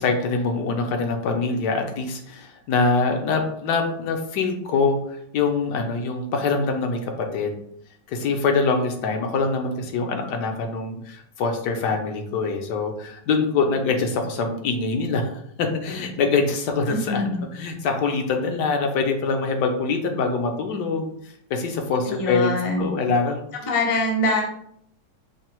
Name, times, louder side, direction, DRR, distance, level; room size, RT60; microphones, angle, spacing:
voice 1, 0.0-7.5 8.1-21.1 21.5-23.4, left 4 dB, 75° left, 4 dB, 1.2 m, -24 dB
voice 2, 16.9-17.3 22.1-22.8 23.7-24.4, left 2 dB, 60° left, -1 dB, 0.3 m, -23 dB
5.6 x 2.0 x 3.0 m, 0.70 s
omnidirectional pair, 1.9 m